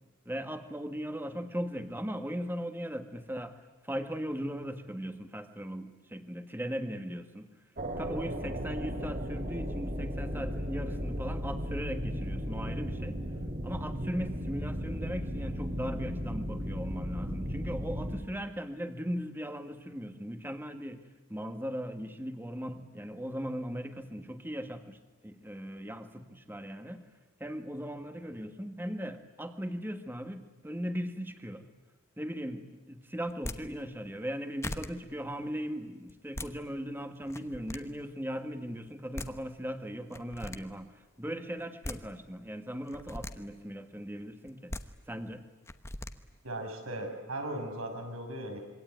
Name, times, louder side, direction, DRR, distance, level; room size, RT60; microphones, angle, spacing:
voice 1, 0.3-3.5 3.8-7.5 8.0-13.2 13.6-21.0 21.3-25.0 25.2-27.0 27.4-31.6 32.2-44.7 45.1-45.4, equal, 10° right, 7 dB, 1.7 m, -38 dB
sound 1, 7.8-18.2, equal, 45° right, 3.0 m, -35 dB
sound 2, 33.3-33.6 34.3-34.4 34.6-34.9 36.1-36.5 37.2-37.8 38.9-39.0 39.1-39.3 40.1-40.6 41.6-42.0 42.9-43.3 44.5-44.8 45.7-46.1, left 1 dB, 15° left, 1.1 m, -38 dB
voice 2, 46.4-48.6, right 1 dB, 85° right, 4 dB, 6.1 m, -37 dB
26.5 x 24.0 x 9.4 m, 1.1 s
head